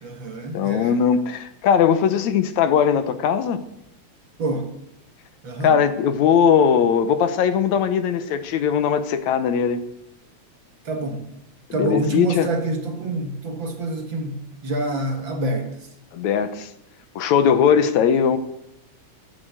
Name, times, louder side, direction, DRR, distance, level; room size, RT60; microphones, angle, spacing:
voice 1, 0.0-1.0 4.4-4.7 5.4-5.9 10.9-11.3 11.7-15.9, right 2 dB, 45° right, 4 dB, 2.0 m, -27 dB
voice 2, 0.5-3.6 5.6-9.8 11.7-12.5 16.1-16.7 17.2-18.4, left 7 dB, 80° left, 11 dB, 2.3 m, -19 dB
13.0 x 11.5 x 7.9 m, 0.81 s
omnidirectional pair, 3.3 m